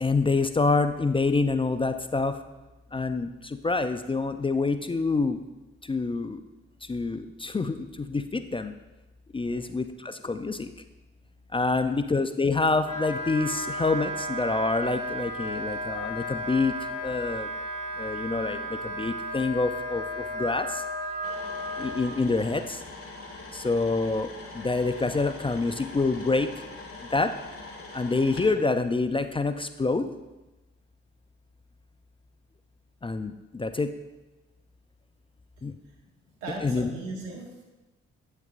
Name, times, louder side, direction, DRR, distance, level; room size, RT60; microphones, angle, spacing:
voice 1, 0.0-2.3 2.9-3.3 3.6-5.4 5.9-6.4 6.9-8.7 9.3-10.7 11.5-16.7 17.0-17.5 18.0-20.7 21.8-22.6 23.5-24.3 24.5-26.5 27.1-27.3 27.9-30.1 33.0-33.9 35.6-35.7 36.6-36.9, left 3 dB, 15° left, 9 dB, 0.4 m, -26 dB
Wind instrument woodwind instrument, 12.8-22.1, equal, 20° right, 2.1 m, -34 dB
sound 1, 21.2-28.5, left 2 dB, 45° left, 1.4 m, -43 dB
voice 2, 36.4-37.5, right 2 dB, 80° right, 1 dB, 1.2 m, -38 dB
8.3 x 6.5 x 2.5 m, 1.1 s
hypercardioid pair, 40°, 31 cm